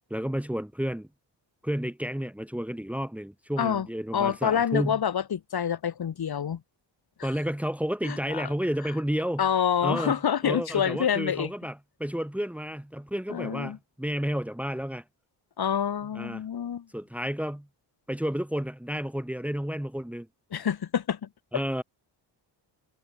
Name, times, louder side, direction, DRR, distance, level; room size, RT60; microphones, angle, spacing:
voice 1, 0.1-1.1 1.6-5.0 7.2-9.4 9.8-10.2 10.4-15.0 16.1-16.4 16.9-17.7 18.1-20.3 21.5-21.8, equal, 5° right, 2.5 m, -31 dB
voice 2, 4.1-6.6 7.2-7.3 8.0-8.5 9.4-11.5 13.3-13.8 15.6-16.9 20.5-21.6, left 8 dB, 55° left, 5.6 m, -27 dB
wide cardioid pair, 140°, 44 cm